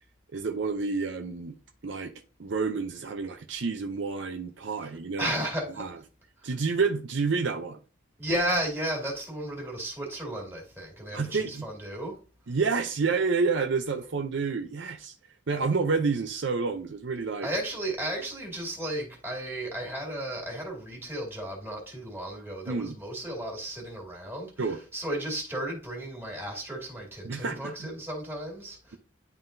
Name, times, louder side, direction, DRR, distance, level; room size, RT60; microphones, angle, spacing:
voice 1, 0.3-1.6 1.8-2.1 2.4-5.3 5.8-5.9 6.4-7.8 11.1-11.7 12.5-15.1 15.5-17.5 22.7-23.0 24.6-24.8 27.2-27.9, right 4 dB, 65° right, 0.6 m, -29 dB
voice 2, 5.2-5.8 6.4-6.5 8.2-12.2 17.4-29.0, right 1 dB, 10° right, 2.4 m, -34 dB
11.0 x 3.8 x 2.6 m
head